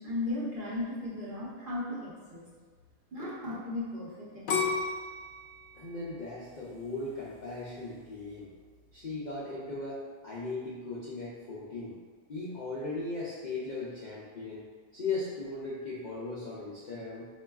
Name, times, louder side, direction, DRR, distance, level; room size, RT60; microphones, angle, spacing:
voice 1, 0.0-2.5 3.1-4.7, left 2 dB, 50° right, -7 dB, 0.8 m, -36 dB
sound 1, 4.5-7.4 7.9-8.4, left 4 dB, 80° left, 1.0 m, -33 dB
voice 2, 5.7-8.5 8.9-12.0 12.3-14.6 14.9-17.3, left 3 dB, 60° left, -7 dB, 0.4 m, -38 dB
5.1 x 2.4 x 2.3 m, 1.6 s
omnidirectional pair, 1.4 m